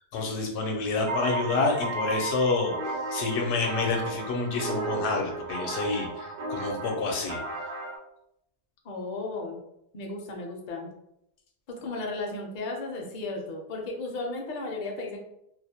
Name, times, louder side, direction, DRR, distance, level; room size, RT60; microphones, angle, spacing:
voice 1, 0.1-7.4, left 4 dB, 85° left, 1 dB, 0.8 m, -28 dB
sound 1, 1.1-8.0, right 3 dB, 80° right, 0.9 m, -34 dB
voice 2, 8.8-9.6 9.9-10.9 11.7-15.2, left 2 dB, 55° left, 1 dB, 0.6 m, -34 dB
2.3 x 2.0 x 2.7 m, 0.79 s
omnidirectional pair, 1.1 m